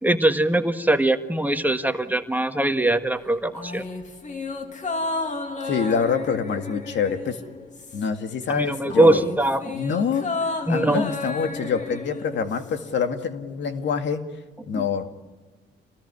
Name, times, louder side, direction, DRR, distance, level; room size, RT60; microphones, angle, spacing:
voice 1, 0.0-3.8 8.5-9.6 10.7-11.0, right 2 dB, 10° right, 7 dB, 1.6 m, -21 dB
sound 1, 3.5-8.3 8.6-12.9 13.2-13.3, left 3 dB, 35° left, 2.8 m, -32 dB
voice 2, 5.6-7.4 7.9-9.3 9.7-10.3 10.7-14.2 14.7-15.0, left 6 dB, 65° left, 7 dB, 2.2 m, -25 dB
28.0 x 19.5 x 9.9 m, 1.3 s
cardioid pair, 90°, 20 cm